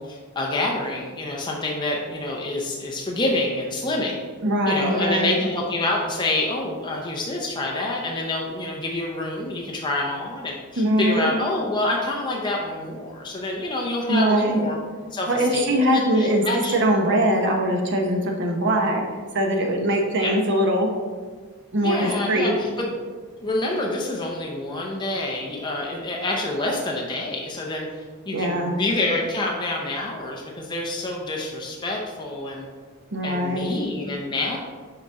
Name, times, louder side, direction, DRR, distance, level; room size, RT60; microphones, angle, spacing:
voice 1, 0.0-4.3 4.7-14.8 15.1-16.7 20.2-20.3 21.8-23.1 23.4-27.9 28.3-32.6 33.2-34.6, left 2 dB, 20° left, -1 dB, 0.6 m, -27 dB
voice 2, 4.4-5.4 10.8-11.3 14.1-14.6 15.3-16.4 16.7-19.0 19.3-20.9 21.7-22.6 28.3-28.7 33.1-33.8, right 1 dB, 55° right, 2 dB, 0.9 m, -21 dB
6.7 x 4.3 x 3.6 m, 1.5 s
head